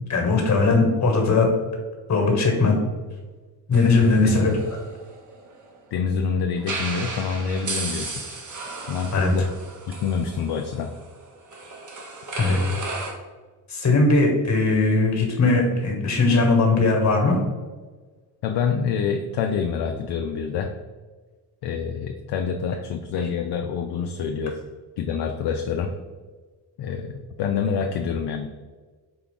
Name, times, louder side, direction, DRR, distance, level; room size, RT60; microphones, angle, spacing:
voice 1, 0.1-1.5 2.1-2.8 3.7-4.5 9.1-9.3 12.3-12.6 13.7-17.4, left 3 dB, 35° left, 2 dB, 1.3 m, -19 dB
sound 1, 3.7-5.8 6.6-13.1, right 3 dB, 40° right, 1.0 m, -35 dB
voice 2, 4.0-4.6 5.9-8.2 8.9-9.5 9.9-10.9 18.4-20.7 21.6-24.6 25.0-25.9 26.8-28.5, left 6 dB, 60° left, 4 dB, 0.5 m, -27 dB
4.6 x 2.3 x 3.7 m, 1.4 s
supercardioid pair, 55°, 46 cm